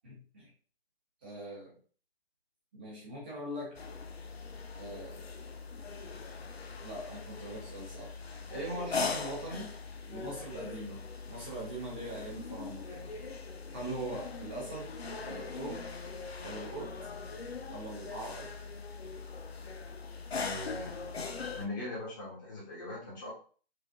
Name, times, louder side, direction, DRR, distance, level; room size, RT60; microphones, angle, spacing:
voice 1, 0.0-0.5 1.2-1.7 2.7-3.8 4.7-5.2 6.8-8.1 8.5-9.7 10.1-13.1 13.7-14.9 15.2-15.8 16.4-16.9 17.6-18.5, right 1 dB, 10° right, -6 dB, 0.6 m, -41 dB
sound 1, 3.7-21.7, left 4 dB, 80° left, 0.6 m, -41 dB
voice 2, 20.3-21.0 21.6-23.3, left 2 dB, 20° left, -4 dB, 1.1 m, -40 dB
5.0 x 2.4 x 2.3 m, 0.40 s
figure-of-eight pair, 150°, 31 cm